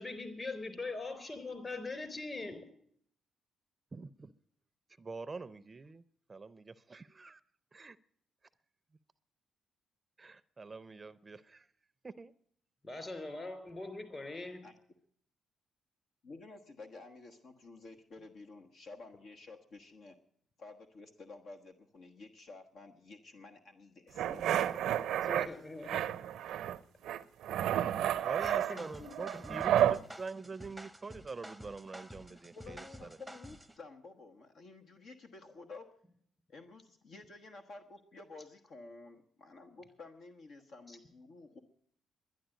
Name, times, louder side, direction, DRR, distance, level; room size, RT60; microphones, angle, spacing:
voice 1, 0.0-2.6 12.8-14.6 25.3-26.0 28.4-29.1 29.5-29.6 40.9-41.0, left 3 dB, 30° left, 10 dB, 4.0 m, -42 dB
voice 2, 3.9-4.3 5.0-6.0 6.3-7.4 7.7-8.0 10.2-11.7 12.0-12.3 25.2-25.7 27.8-28.0 28.2-33.1, right 4 dB, 30° right, 17 dB, 0.5 m, -45 dB
voice 3, 16.2-20.2 20.6-24.7 32.3-36.0 36.5-41.6, left 3 dB, 65° left, 4 dB, 1.2 m, -52 dB
sound 1, 24.2-25.5 25.9-26.8 27.0-30.0, right 11 dB, 80° right, 0.5 m, -31 dB
sound 2, 28.4-33.8, equal, ahead, 0.8 m, -50 dB
11.5 x 11.0 x 9.0 m, 0.65 s
cardioid pair, 70°, 0 cm